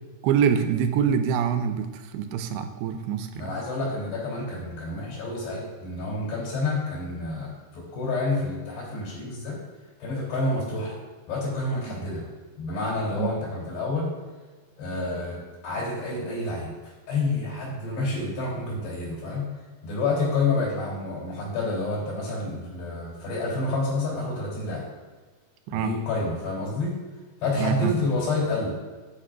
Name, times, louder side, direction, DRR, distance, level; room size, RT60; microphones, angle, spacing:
voice 1, 0.2-3.6 11.9-12.0 13.1-13.3 25.7-26.0 27.6-27.9, right 8 dB, 90° right, 7 dB, 2.7 m, -25 dB
voice 2, 3.4-9.6 10.0-11.0 11.3-12.3 12.6-14.1 14.8-19.5 19.8-24.9 25.7-27.0 27.4-28.9, left 2 dB, 85° left, -5 dB, 5.5 m, -29 dB
11.0 x 11.0 x 2.5 m, 1.3 s
omnidirectional pair, 4.7 m